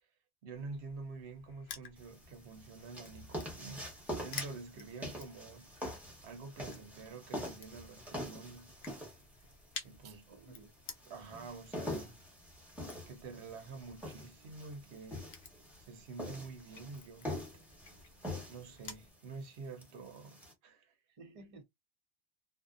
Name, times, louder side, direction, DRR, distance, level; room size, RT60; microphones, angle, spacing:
voice 1, 0.4-3.9 4.2-5.7 6.2-8.7 9.8-10.3 11.1-12.2 13.1-15.3 15.8-17.3 18.5-21.0, right 4 dB, 85° right, 0.9 m, -48 dB
Crushing, 0.5-19.1, left 6 dB, 70° left, 0.8 m, -53 dB
sound 1, 2.0-20.5, equal, ahead, 0.8 m, -45 dB
voice 2, 4.5-4.9 10.0-10.7 21.1-21.6, right 3 dB, 40° right, 0.6 m, -55 dB
2.6 x 2.1 x 2.3 m
omnidirectional pair, 1.1 m